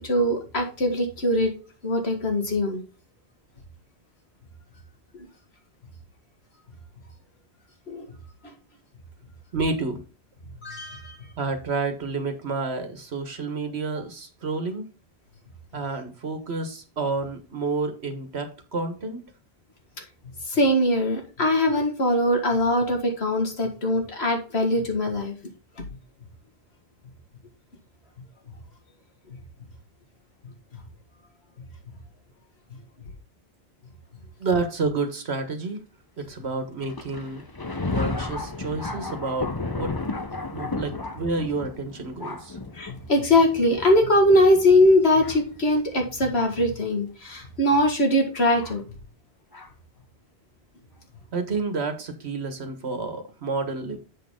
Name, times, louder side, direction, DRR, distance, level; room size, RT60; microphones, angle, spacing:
voice 1, 0.0-1.5 1.8-2.8 7.9-8.1 8.4-8.5 10.6-11.2 20.5-25.3 42.8-48.8, left 1 dB, 70° left, 3 dB, 2.2 m, -21 dB
voice 2, 9.5-10.0 11.4-14.8 15.7-19.2 34.4-35.8 36.2-37.4 37.9-39.9 40.5-42.6 51.3-54.0, right 3 dB, 75° right, 7 dB, 1.7 m, -29 dB
Thunder, 36.8-46.7 47.5-47.6 48.6-48.8 49.5-49.7, left 3 dB, 25° left, 0.7 m, -34 dB
7.6 x 6.3 x 3.7 m, 0.34 s
omnidirectional pair, 1.1 m